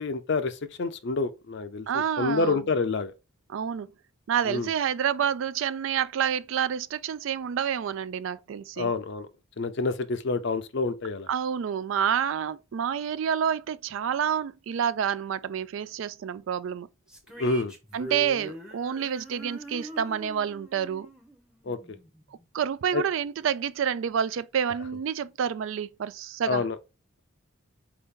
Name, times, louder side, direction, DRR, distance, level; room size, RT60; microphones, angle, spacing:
voice 1, 0.0-3.1 4.5-4.7 8.8-9.3 9.6-11.3 17.4-17.7 21.7-22.0 22.9-23.0 26.5-26.8, left 3 dB, 55° left, 0.5 m, -28 dB
voice 2, 1.9-2.6 3.5-3.9 4.3-8.9 11.3-16.9 17.9-21.1 22.5-26.6, right 8 dB, 65° right, 0.3 m, -28 dB
sound 1, 17.1-22.4, equal, 5° right, 0.7 m, -43 dB
4.3 x 2.8 x 3.6 m
head